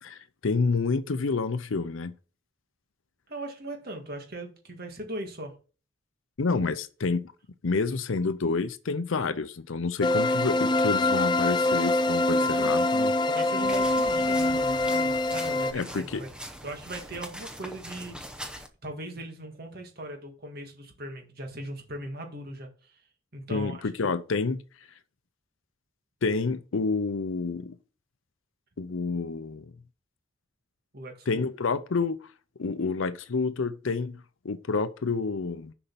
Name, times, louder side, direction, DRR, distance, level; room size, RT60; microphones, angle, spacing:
voice 1, 0.0-2.1 6.4-7.3 7.6-13.1 15.7-16.2 23.5-24.6 26.2-27.8 28.8-29.7 31.3-32.2 32.6-35.7, left 4 dB, 70° left, 0.6 m, -28 dB
voice 2, 3.3-5.6 12.3-12.8 13.3-16.3 16.6-18.5 18.8-23.0 23.3-23.8 30.9-31.4, right 1 dB, 50° right, 1.9 m, -39 dB
sound 1, 10.0-15.7, left 2 dB, 20° left, 0.4 m, -24 dB
sound 2, 13.6-18.7, equal, 5° right, 0.8 m, -42 dB
6.9 x 5.5 x 5.7 m
head